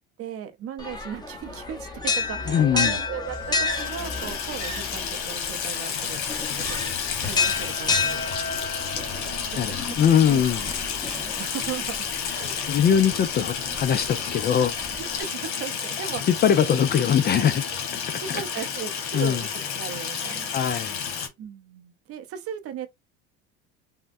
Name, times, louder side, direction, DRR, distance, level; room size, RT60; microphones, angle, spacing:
voice 1, 0.2-6.2 6.5-6.8 7.2-8.2 9.5-10.0 10.3-10.4 11.1-12.6 14.9-16.3 17.4-17.5 18.2-19.5 19.7-20.5 21.4-22.9, right 9 dB, 45° right, 0.6 m, -37 dB
sound 1, 0.8-15.2, left 4 dB, 10° left, 0.8 m, -31 dB
voice 2, 2.5-2.9 9.6-10.7 12.7-14.9 16.3-17.6 18.3-18.4 19.1-19.4 20.5-21.0, left 8 dB, 30° left, 0.3 m, -21 dB
Water tap faucet / Sink (filling or washing), 3.4-21.3, left 7 dB, 85° left, 1.0 m, -31 dB
3.4 x 2.1 x 2.5 m
supercardioid pair, 90°, 34 cm